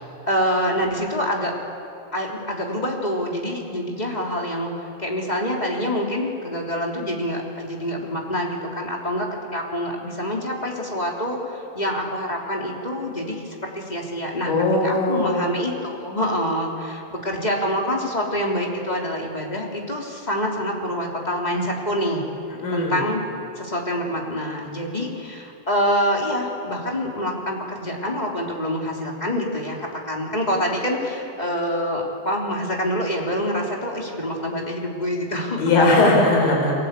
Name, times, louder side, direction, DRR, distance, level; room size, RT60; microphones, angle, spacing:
voice 1, 0.3-1.5 2.1-4.7 5.0-14.5 14.8-22.2 22.7-23.2 23.6-35.6, equal, 10° left, -1 dB, 2.6 m, -26 dB
voice 2, 14.5-15.4 22.6-23.0 35.6-36.7, left 2 dB, 50° left, -1 dB, 6.7 m, -19 dB
30.0 x 23.0 x 8.3 m, 2.7 s
omnidirectional pair, 5.3 m